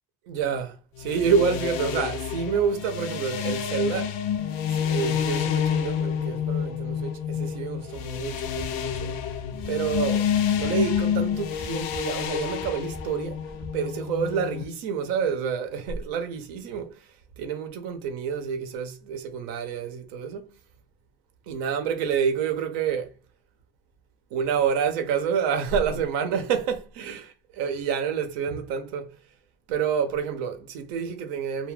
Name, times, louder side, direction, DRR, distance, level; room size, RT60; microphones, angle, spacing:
voice 1, 0.3-4.2 4.7-9.1 9.7-10.3 10.6-13.4 13.7-17.0 17.4-20.5 21.5-23.1 24.3-29.1 29.7-31.7, right 7 dB, 70° right, 0.8 m, -28 dB
sound 1, 1.0-14.6, left 8 dB, 65° left, 0.5 m, -28 dB
sound 2, 7.9-13.8, equal, ahead, 0.4 m, -44 dB
2.3 x 2.2 x 3.3 m
supercardioid pair, 130°, 16 cm